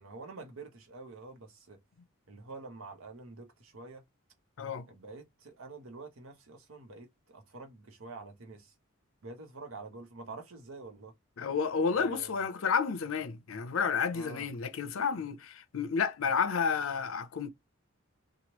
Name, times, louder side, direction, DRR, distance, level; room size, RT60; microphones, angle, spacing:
voice 1, 0.0-1.8 2.3-4.0 4.9-8.7 9.2-11.1 11.9-12.6 14.1-14.5, right 3 dB, 75° right, 0.9 m, -47 dB
voice 2, 11.4-17.5, left 6 dB, 70° left, 0.5 m, -31 dB
3.0 x 2.3 x 2.9 m
head